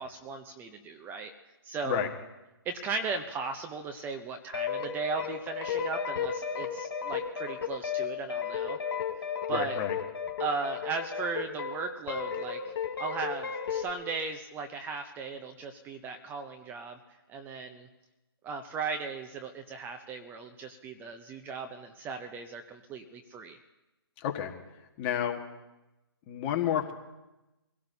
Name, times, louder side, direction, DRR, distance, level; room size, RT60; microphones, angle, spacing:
voice 1, 0.0-1.3 1.6-2.1 2.6-8.8 9.2-9.8 10.4-17.0 17.3-17.9 18.4-23.6, right 4 dB, 15° right, 6 dB, 0.7 m, -37 dB
sound 1, 4.5-11.8 12.1-13.9, left 7 dB, 65° left, 2.8 m, -34 dB
voice 2, 9.5-10.0 24.2-24.5 25.0-25.4 26.3-26.9, left 10 dB, 25° left, 3 dB, 1.5 m, -30 dB
25.0 x 16.5 x 2.8 m, 1.0 s
hypercardioid pair, 145°, 13 cm